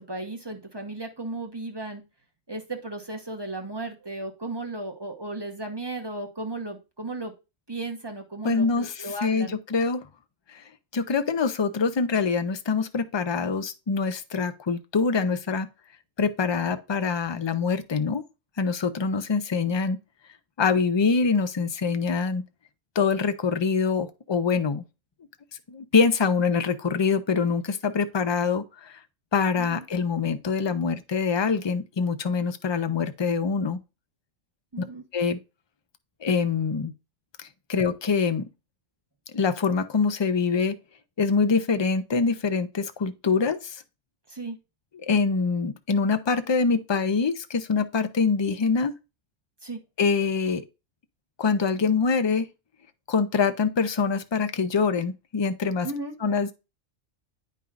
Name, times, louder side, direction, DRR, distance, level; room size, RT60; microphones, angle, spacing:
voice 1, 0.0-2.0 2.5-7.3 7.7-9.6 29.6-29.8 34.7-35.0 44.3-44.6 49.6-49.8 55.8-56.1, right 2 dB, 20° right, 1.1 m, -35 dB
voice 2, 8.4-10.0 10.5-10.6 10.9-15.7 16.2-18.2 18.6-20.0 20.6-22.4 23.0-24.8 25.7-29.0 29.3-33.8 34.8-34.9 35.1-35.4 36.2-36.9 37.4-38.4 39.3-40.7 41.2-43.8 45.1-48.9 50.0-50.6 51.4-52.5 53.1-55.9 56.2-56.5, left 5 dB, 40° left, 0.4 m, -24 dB
9.1 x 5.4 x 2.4 m
omnidirectional pair, 1.3 m